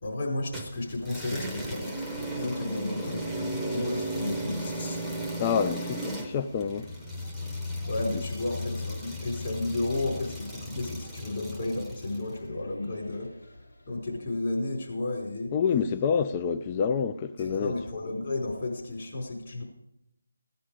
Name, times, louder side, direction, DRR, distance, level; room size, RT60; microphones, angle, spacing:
voice 1, 0.0-5.0 7.9-13.3 13.9-15.5 17.4-19.6, left 2 dB, 40° left, 4.7 m, -33 dB
sound 1, 0.5-12.3, equal, 5° left, 1.0 m, -35 dB
sound 2, 0.8-14.5, left 1 dB, 75° left, 4.9 m, -51 dB
voice 2, 5.4-6.9 8.1-8.2 15.5-17.8, left 6 dB, 20° left, 0.4 m, -27 dB
16.5 x 10.0 x 5.0 m
figure-of-eight pair, 165°, 0 cm